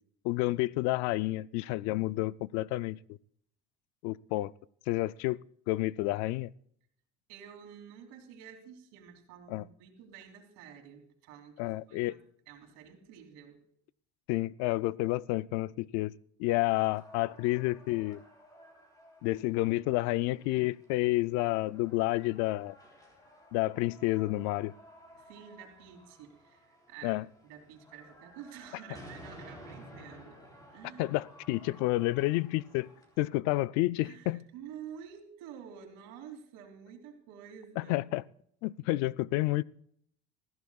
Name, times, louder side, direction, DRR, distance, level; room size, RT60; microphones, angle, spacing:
voice 1, 0.2-3.2 4.0-4.5 4.9-5.4 5.7-6.5 9.5-9.6 11.6-12.1 14.3-16.1 16.4-18.2 19.2-22.8 23.5-24.7 27.0-27.2 31.0-32.9 33.2-34.4 37.8-38.2 38.6-39.6, left 19 dB, 65° left, 0.4 m, -30 dB
voice 2, 7.3-12.2 12.5-13.6 25.1-30.4 30.7-31.1 34.0-37.9, right 8 dB, 70° right, 3.0 m, -50 dB
sound 1, 16.6-33.2, equal, 10° left, 3.4 m, -55 dB
20.0 x 15.0 x 2.4 m
cardioid pair, 160°, 30 cm